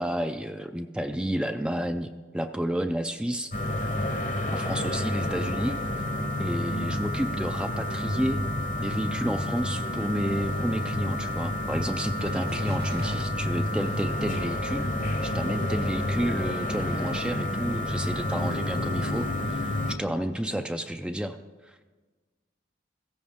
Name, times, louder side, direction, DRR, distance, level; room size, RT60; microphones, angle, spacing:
voice 1, 0.0-3.5 4.5-6.0 6.4-8.4 8.8-14.9 15.2-21.4 21.6-21.8, equal, 5° right, 7 dB, 0.4 m, -31 dB
sound 1, 3.5-19.9, left 1 dB, 45° left, 0.9 m, -29 dB
sound 2, 11.3-11.6 12.2-13.2 13.8-14.8 15.4-15.8, right 2 dB, 60° right, 1.3 m, -44 dB
voice 2, 15.5-15.9 20.0-20.6, left 1 dB, 70° left, 6 dB, 1.4 m, -43 dB
16.0 x 14.5 x 3.6 m, 1.3 s
head